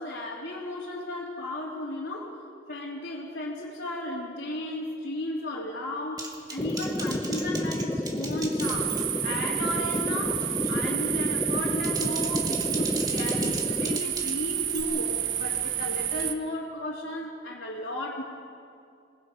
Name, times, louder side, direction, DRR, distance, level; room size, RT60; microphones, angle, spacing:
voice 1, 0.0-2.4 2.7-18.2, left 1 dB, 60° left, -7 dB, 2.9 m, -34 dB
Typing, 6.2-9.3 9.7-10.0 10.4-10.8 11.6-14.8, right 3 dB, 20° right, 1.8 m, -39 dB
sound 1, 6.6-14.0, left 1 dB, 10° left, 0.5 m, -31 dB
sound 2, 8.6-16.3, right 10 dB, 70° right, 1.2 m, -30 dB
27.0 x 20.0 x 5.5 m, 2.4 s
head